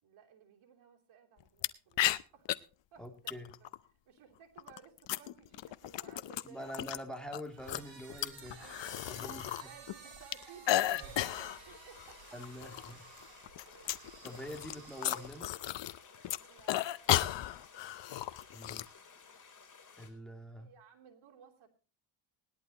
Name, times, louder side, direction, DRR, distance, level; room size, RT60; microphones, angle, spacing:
voice 1, 0.0-7.0 8.2-9.0 9.5-12.2 12.9-13.0 13.6-14.0 16.4-16.8 20.5-21.7, right 7 dB, 80° right, 2 dB, 3.2 m, -58 dB
sound 1, 1.6-1.7 2.0-2.6 3.3-3.8 4.6-7.0 7.3-9.6 9.9-11.6 12.0-12.1 12.4-12.9 13.2-16.0 16.2-18.9, left 13 dB, 60° left, 0.8 m, -34 dB
voice 2, 3.0-3.5 6.4-8.6 9.1-9.7 12.3-13.0 14.2-15.5 18.5-18.8 20.0-20.7, equal, ahead, 4 dB, 2.6 m, -45 dB
sound 2, 7.5-15.7, right 5 dB, 65° right, 5.4 m, -54 dB
sound 3, 10.7-20.1, left 5 dB, 40° left, 3.9 m, -57 dB
19.5 x 11.5 x 2.9 m, 0.34 s
cardioid pair, 100°, 48 cm